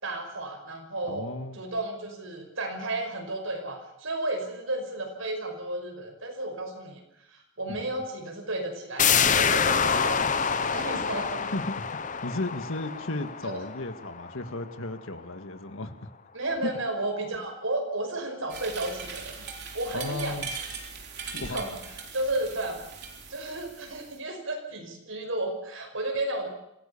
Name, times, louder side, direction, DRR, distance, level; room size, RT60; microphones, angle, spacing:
voice 1, 0.0-1.3 1.5-7.0 7.3-11.5 13.4-13.6 16.3-19.4 19.7-20.6 21.2-22.8 23.3-26.5, right 2 dB, 70° right, 4 dB, 5.6 m, -33 dB
voice 2, 1.1-1.6 11.5-16.1 16.6-16.7 19.9-20.5 21.4-21.7, left 2 dB, 70° left, 8 dB, 1.8 m, -35 dB
sound 1, 9.0-14.5 14.8-14.9, left 6 dB, 35° left, 0.8 m, -26 dB
sound 2, 18.5-24.2, right 5 dB, 50° right, 3.7 m, -40 dB
26.0 x 16.5 x 7.1 m, 0.83 s
head